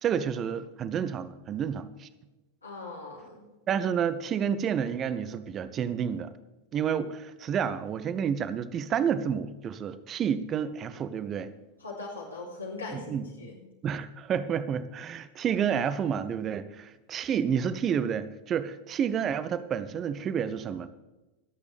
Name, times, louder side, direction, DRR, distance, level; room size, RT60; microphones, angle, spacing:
voice 1, 0.0-2.1 3.7-6.3 6.7-11.5 12.9-13.3 13.8-20.9, right 8 dB, 30° right, 14 dB, 0.8 m, -30 dB
voice 2, 2.6-3.5 11.8-13.6, left 3 dB, 80° left, -5 dB, 3.3 m, -40 dB
25.0 x 8.4 x 3.4 m, 1.1 s
figure-of-eight pair, 90°, 0 cm